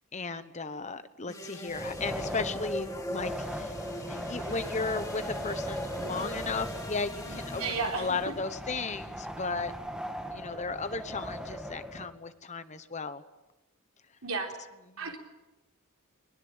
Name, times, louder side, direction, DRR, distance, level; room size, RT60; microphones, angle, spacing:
voice 1, 0.1-3.7 4.1-9.7 10.3-13.2 15.0-15.1, left 4 dB, 30° left, 11 dB, 1.1 m, -35 dB
sound 1, 1.3-8.4, left 1 dB, 15° left, 3.1 m, -43 dB
Wind, 1.7-12.1, equal, 5° right, 2.3 m, -38 dB
voice 2, 7.3-8.3 14.2-14.5 15.0-15.2, right 4 dB, 65° right, 2 dB, 4.1 m, -34 dB
21.0 x 21.0 x 9.0 m, 1.0 s
head